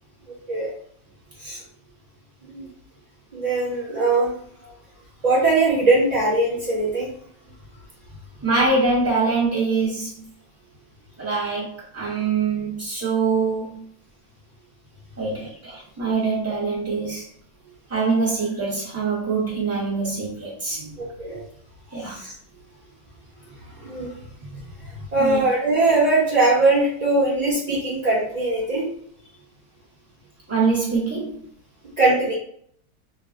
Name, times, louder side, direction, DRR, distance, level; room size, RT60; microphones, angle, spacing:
voice 1, 3.3-4.4 5.2-7.1 20.8-21.4 22.1-22.3 23.8-24.2 25.1-28.9 32.0-32.3, right 2 dB, 50° right, -7 dB, 0.5 m, -21 dB
voice 2, 8.4-10.2 11.2-13.8 15.2-17.3 17.9-20.8 21.9-22.1 25.2-25.4 30.5-31.4, right 4 dB, 10° right, -6 dB, 0.9 m, -24 dB
3.3 x 2.0 x 2.4 m, 0.64 s
omnidirectional pair, 1.6 m